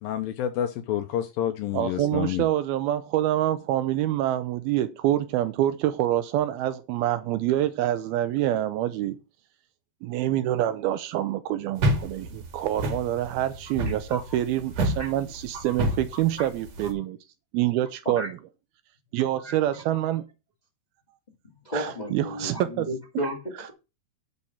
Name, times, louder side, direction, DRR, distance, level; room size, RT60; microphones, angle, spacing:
voice 1, 0.0-2.4, left 11 dB, 80° left, 2.2 m, -28 dB
voice 2, 1.7-9.2 10.0-17.2 17.5-18.4 19.1-20.3 21.7-22.9, right 13 dB, 80° right, 2.4 m, -26 dB
sound 1, 11.8-16.9, right 1 dB, 50° right, 2.6 m, -29 dB
voice 3, 16.1-16.5 18.0-18.3 19.4-19.8 21.6-23.7, equal, 25° left, 0.8 m, -34 dB
10.5 x 4.9 x 5.7 m
omnidirectional pair, 4.7 m